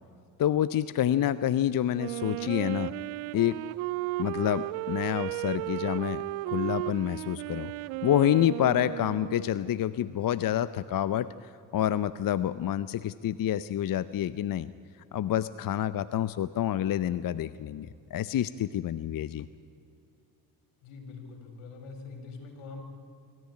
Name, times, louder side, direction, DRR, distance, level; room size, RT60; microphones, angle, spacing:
voice 1, 0.4-2.9 3.3-3.6 4.2-7.7 8.0-14.7 15.1-19.5, left 11 dB, 45° left, 16 dB, 0.7 m, -28 dB
Wind instrument woodwind instrument, 2.0-9.7, right 21 dB, 80° right, 0.6 m, -35 dB
voice 2, 20.8-22.8, left 4 dB, 80° left, 5 dB, 4.7 m, -44 dB
24.5 x 14.0 x 9.7 m, 2.6 s
supercardioid pair, 65°, 49 cm